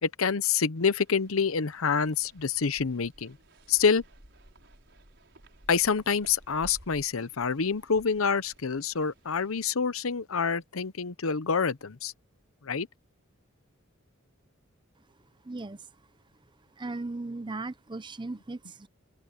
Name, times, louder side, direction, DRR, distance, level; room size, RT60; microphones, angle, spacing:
voice 1, 0.0-3.4 3.7-4.0 5.7-12.1 12.6-12.9, left 5 dB, 75° left, 0.8 m, -27 dB
sound 1, 0.8-9.7, right 1 dB, 60° right, 5.9 m, -55 dB
voice 2, 15.4-15.9 16.8-18.9, right 2 dB, 20° right, 0.6 m, -37 dB
open air
head